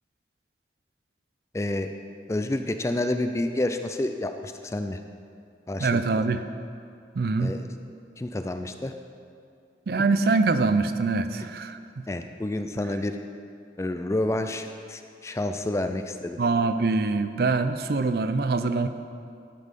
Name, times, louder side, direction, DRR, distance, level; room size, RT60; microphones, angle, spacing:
voice 1, 1.5-1.9 2.3-5.0 5.7-6.0 7.4-7.6 8.2-8.9 12.1-13.2 13.8-16.4, left 1 dB, 15° left, 7 dB, 0.3 m, -29 dB
voice 2, 5.8-6.4 7.1-7.5 9.9-11.8 16.4-18.9, right 3 dB, 55° right, 10 dB, 0.4 m, -24 dB
12.0 x 5.4 x 5.3 m, 2.4 s
head